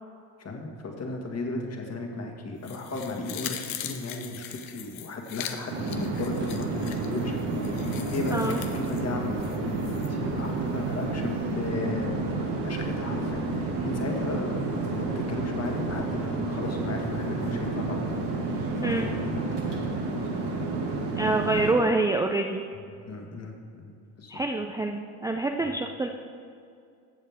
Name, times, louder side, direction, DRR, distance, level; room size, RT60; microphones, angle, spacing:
voice 1, 0.4-18.1 18.8-20.2 23.1-23.9 24.2-24.4 25.6-25.7, left 2 dB, 35° left, 1 dB, 2.0 m, -35 dB
sound 1, 2.6-10.1 10.5-10.6, left 10 dB, 85° left, 0.9 m, -41 dB
sound 2, 5.7-21.7, right 3 dB, 70° right, 2.1 m, -30 dB
Subway metro underground, 7.4-19.3, right 3 dB, 55° right, 2.3 m, -44 dB
voice 2, 8.3-8.6 18.8-19.1 21.2-22.6 24.3-26.1, right 2 dB, 10° right, 3 dB, 0.5 m, -26 dB
14.5 x 7.4 x 3.6 m, 2.4 s
supercardioid pair, 85°, 42 cm